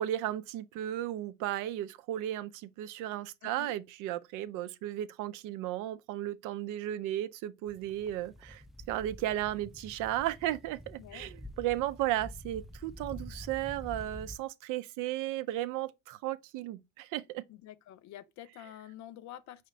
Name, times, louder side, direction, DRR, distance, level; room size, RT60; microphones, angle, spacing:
voice 1, 0.0-17.4, right 13 dB, 65° right, 0.5 m, -35 dB
voice 2, 3.4-3.7 11.0-11.3 17.5-19.7, left 12 dB, 55° left, 0.5 m, -48 dB
sound 1, 7.7-14.4, left 1 dB, ahead, 0.3 m, -47 dB
4.9 x 2.8 x 3.1 m
supercardioid pair, 75°, 33 cm